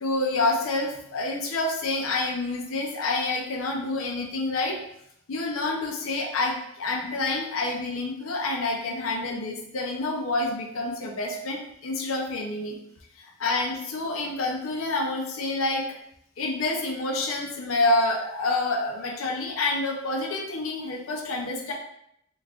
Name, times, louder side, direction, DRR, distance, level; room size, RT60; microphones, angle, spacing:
voice 1, 0.0-4.8 5.3-12.8 13.4-15.9 16.4-21.7, left 2 dB, 85° left, 0 dB, 0.6 m, -28 dB
3.1 x 2.4 x 3.4 m, 0.74 s
head